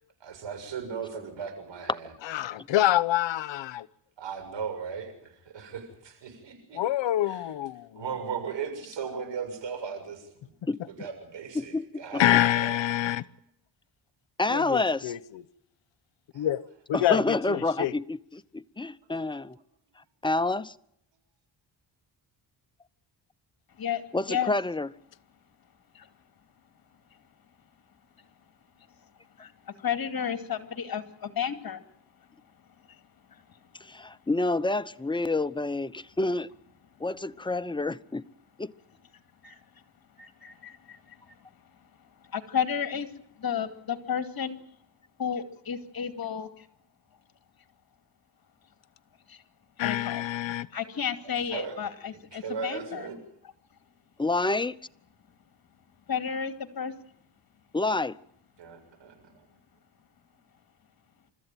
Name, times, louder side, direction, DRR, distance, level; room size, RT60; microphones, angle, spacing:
voice 1, 0.2-2.1 3.7-3.8 4.2-6.8 7.2-7.5 8.0-10.5 10.9-12.8 16.3-16.5 19.0-19.1 51.5-51.8 52.3-53.2 58.6-59.5, right 6 dB, 75° right, 7.0 m, -37 dB
voice 2, 2.3-3.9 6.7-8.0 12.2-13.2 14.5-15.4 16.3-16.6 16.9-17.2 17.5-17.9 49.8-50.7, left 13 dB, 85° left, 1.0 m, -26 dB
voice 3, 10.7-11.1 11.5-12.2 14.4-15.1 16.9-19.6 20.2-20.7 24.1-24.9 33.8-36.5 37.0-38.2 38.6-38.7 54.2-54.8 57.7-58.2, left 2 dB, 10° left, 0.9 m, -28 dB
voice 4, 29.8-31.8 39.4-39.6 40.2-41.2 42.3-43.1 43.4-44.6 45.2-46.6 49.3-49.4 49.8-50.2 50.7-53.0 56.1-56.9, left 8 dB, 55° left, 2.4 m, -32 dB
29.5 x 14.0 x 9.1 m
cardioid pair, 85°, 44 cm